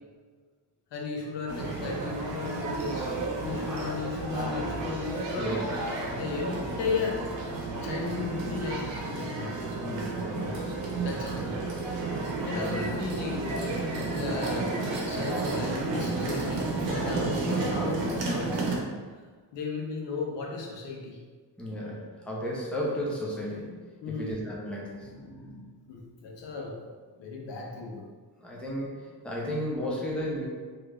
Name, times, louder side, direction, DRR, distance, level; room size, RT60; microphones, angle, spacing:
voice 1, 0.9-3.1 3.4-5.5 6.2-7.2 7.8-9.5 11.0-11.4 12.4-13.7 14.1-14.8 15.0-18.6 19.5-21.2 24.0-24.4 25.9-26.8 27.2-28.0, left 4 dB, 80° left, -1 dB, 0.8 m, -35 dB
sound 1, 1.5-18.8, right 3 dB, 90° right, 0.7 m, -32 dB
voice 2, 9.8-10.6 11.4-11.6 12.5-12.9 21.6-23.8 24.1-25.6 28.4-28.9 29.2-30.5, equal, 5° left, -4 dB, 0.6 m, -34 dB
3.2 x 2.4 x 3.3 m, 1.5 s
wide cardioid pair, 130°, 43 cm